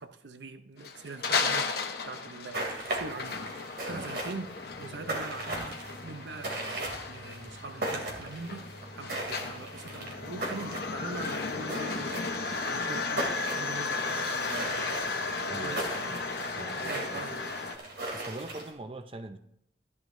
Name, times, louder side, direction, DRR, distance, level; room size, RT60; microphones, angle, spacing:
voice 1, 0.0-1.8 2.1-4.5 4.8-8.7 8.9-16.2 16.8-17.5, right 3 dB, 80° right, 0.7 m, -43 dB
sound 1, 0.8-17.8, left 4 dB, 60° left, 1.0 m, -35 dB
sound 2, 2.5-18.7, right 1 dB, 60° right, 2.9 m, -38 dB
voice 2, 15.5-16.2 16.6-17.3 18.1-19.4, right 2 dB, 30° right, 0.5 m, -42 dB
14.5 x 10.5 x 2.7 m
head